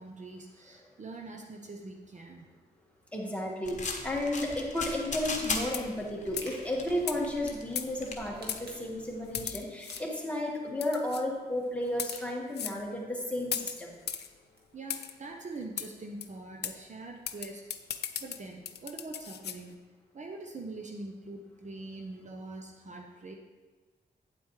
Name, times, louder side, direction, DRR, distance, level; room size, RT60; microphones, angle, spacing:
voice 1, 0.0-2.5 14.7-17.9 18.2-19.8 20.1-23.3, right 2 dB, 45° right, 2 dB, 0.9 m, -43 dB
voice 2, 3.1-13.9, left 1 dB, 5° left, -2 dB, 1.7 m, -33 dB
sound 1, 3.6-9.5, left 3 dB, 45° left, 1.1 m, -39 dB
sound 2, 5.7-6.0 6.4-6.6 7.1-7.2 7.8-8.1 8.5-8.6 9.3-10.0 10.8-11.2 11.9-12.2 12.5-12.8 13.5-14.3 14.9-15.1 15.8-15.9 16.2-16.3 16.6-16.8 17.3-19.6, left 9 dB, 75° left, 0.5 m, -37 dB
sound 3, 6.4-7.1 8.2-9.0 9.9-10.5 12.1-12.2 14.2-15.3, right 1 dB, 70° right, 1.8 m, -51 dB
9.0 x 8.1 x 3.3 m, 1.3 s
cardioid pair, 80°, 17 cm